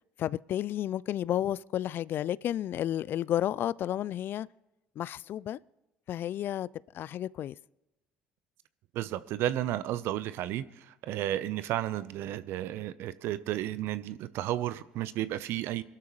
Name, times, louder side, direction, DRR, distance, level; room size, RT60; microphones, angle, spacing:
voice 1, 0.2-4.5 5.0-5.6 6.1-6.7 6.9-7.5, left 11 dB, 55° left, 0.4 m, -31 dB
voice 2, 8.9-15.8, right 13 dB, 65° right, 0.8 m, -33 dB
24.0 x 12.5 x 3.1 m
hypercardioid pair, 60°, 4 cm